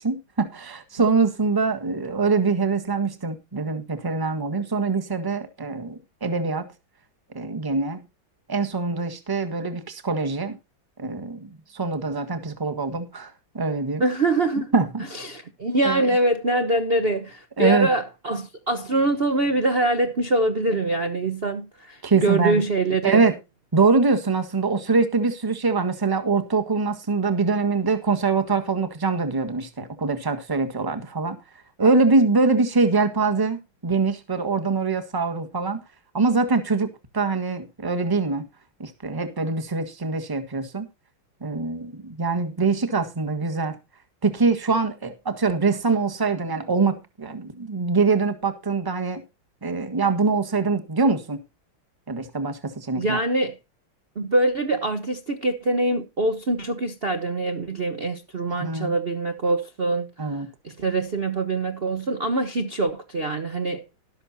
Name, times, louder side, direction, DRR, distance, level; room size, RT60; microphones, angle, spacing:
voice 1, 0.0-6.7 7.3-8.0 8.5-10.6 11.0-14.0 14.7-15.0 15.8-16.0 17.6-17.9 22.0-22.6 23.0-23.3 23.7-31.4 31.8-35.8 36.1-36.9 37.1-38.4 38.8-40.9 41.4-43.8 44.2-49.2 49.6-51.4 52.1-53.2 58.5-58.9 60.2-60.5, right 4 dB, 10° right, 1.3 m, -23 dB
voice 2, 14.0-14.7 15.1-23.2 52.9-53.6 54.1-60.3 60.6-63.8, right 2 dB, 35° right, 1.2 m, -24 dB
13.5 x 12.5 x 2.8 m
omnidirectional pair, 2.3 m